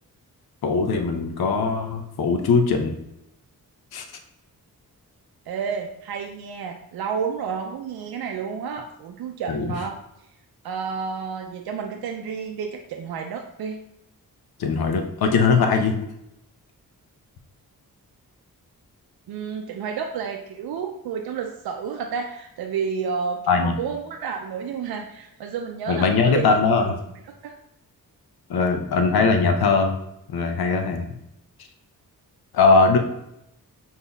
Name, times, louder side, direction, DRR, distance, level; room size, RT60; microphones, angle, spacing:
voice 1, 0.6-2.9 3.9-4.0 9.5-9.7 14.6-15.9 23.5-23.7 25.9-26.9 28.5-30.0 30.3-31.1 32.5-33.0, left 4 dB, 85° left, 5 dB, 0.7 m, -20 dB
voice 2, 5.5-10.0 10.6-13.8 19.3-26.5 27.4-27.6, right 6 dB, 85° right, 3 dB, 0.5 m, -30 dB
5.5 x 2.8 x 3.4 m, 0.82 s
cardioid pair, 70°, 36 cm